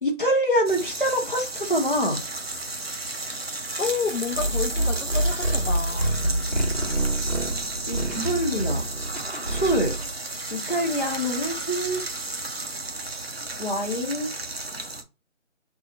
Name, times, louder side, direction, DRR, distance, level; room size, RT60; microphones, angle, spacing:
voice 1, 0.0-2.2 7.9-8.8 9.5-9.9 10.5-12.0 13.6-14.3, equal, 40° left, 1.0 m, -25 dB
sound 1, 0.7-15.0, right 2 dB, 50° right, 0.5 m, -33 dB
voice 2, 3.8-6.2, left 5 dB, 75° left, 0.7 m, -30 dB
sound 2, 4.3-10.1, right 1 dB, 30° right, 1.1 m, -27 dB
2.8 x 2.4 x 4.1 m
figure-of-eight pair, 180°, 39 cm